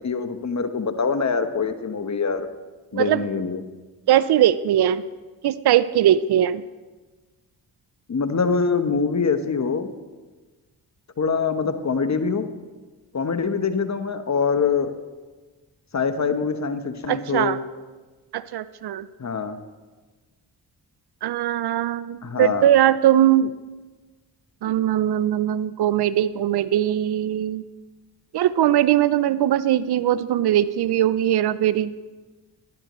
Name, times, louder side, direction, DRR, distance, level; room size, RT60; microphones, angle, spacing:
voice 1, 0.0-2.5 2.9-3.6 8.1-9.9 11.2-12.5 13.1-14.9 15.9-17.6 19.2-19.6 22.2-22.7, left 5 dB, 40° left, 8 dB, 1.0 m, -24 dB
voice 2, 4.1-5.0 5.4-6.6 17.1-17.6 18.3-19.1 21.2-23.5 24.6-27.6 28.3-31.9, right 11 dB, 65° right, 16 dB, 0.5 m, -20 dB
11.5 x 11.5 x 3.1 m, 1.3 s
supercardioid pair, 45°, 43 cm